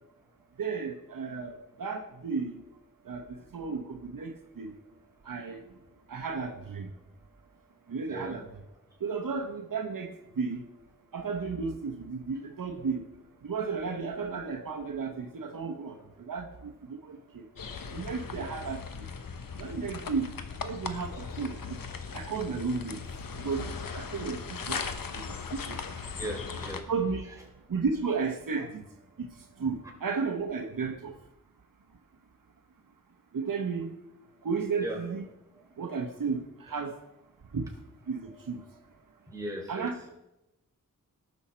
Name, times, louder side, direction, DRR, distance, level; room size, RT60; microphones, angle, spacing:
voice 1, 0.6-2.5 3.1-4.8 5.3-5.6 6.1-6.9 7.9-8.5 9.0-10.6 11.1-13.0 13.4-17.4 17.9-18.8 19.6-20.3 20.6-21.6 22.1-23.0 23.4-23.7 23.9-25.4 25.7-25.8 26.9-27.2 27.7-28.8 29.2-29.3 29.6-31.1 33.3-33.9 34.4-35.3 35.8-37.0 37.5-37.7 38.1-38.6 39.7-40.2, right 5 dB, 75° right, 4 dB, 1.0 m, -33 dB
sound 1, 17.6-26.8, left 5 dB, 80° left, 1.0 m, -38 dB
voice 2, 26.0-26.8 28.6-28.7 34.8-35.0 39.3-39.9, right 1 dB, 10° right, -2 dB, 4.1 m, -38 dB
18.5 x 6.3 x 4.3 m, 0.93 s
wide cardioid pair, 60°, 34 cm